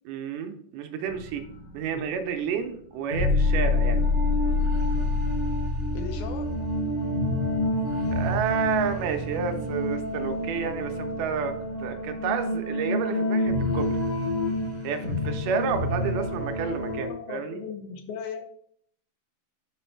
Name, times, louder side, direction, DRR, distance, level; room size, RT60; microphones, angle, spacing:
voice 1, 0.1-1.4 1.7-4.0 8.1-14.0 14.8-17.6, right 7 dB, 80° right, 6 dB, 2.2 m, -30 dB
sound 1, 1.1-2.4 3.0-17.1, left 2 dB, 40° left, 2.0 m, -27 dB
voice 2, 5.9-6.5 16.9-18.4, left 6 dB, 75° left, 5 dB, 1.9 m, -37 dB
5.3 x 5.1 x 4.4 m, 0.64 s
omnidirectional pair, 3.8 m